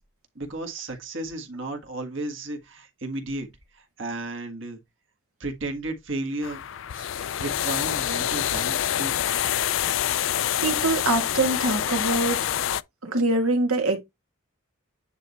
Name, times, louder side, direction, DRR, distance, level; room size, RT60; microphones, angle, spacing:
voice 1, 0.3-3.5 3.7-4.8 5.4-6.6 6.9-7.1 7.4-9.2, right 2 dB, 60° right, 1.7 m, -33 dB
sound 1, 6.4-12.8, left 10 dB, 65° left, 0.4 m, -26 dB
voice 2, 10.6-12.4 13.0-14.0, right 2 dB, 85° right, 2.2 m, -24 dB
9.3 x 4.1 x 3.1 m
head